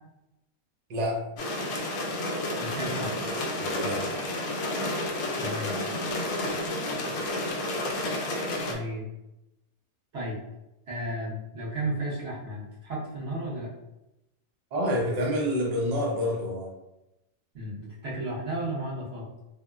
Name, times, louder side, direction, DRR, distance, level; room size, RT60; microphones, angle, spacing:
voice 1, 0.9-1.3 3.8-4.1 14.7-16.7, equal, 75° right, -2 dB, 0.3 m, -27 dB
sound 1, 1.4-8.7, left 1 dB, 80° left, 1.0 m, -30 dB
voice 2, 2.5-3.1 5.4-5.7 8.6-9.1 10.1-10.4 10.9-13.7 17.5-19.3, right 1 dB, 55° right, -8 dB, 1.3 m, -33 dB
3.5 x 2.0 x 2.3 m, 0.92 s
omnidirectional pair, 1.5 m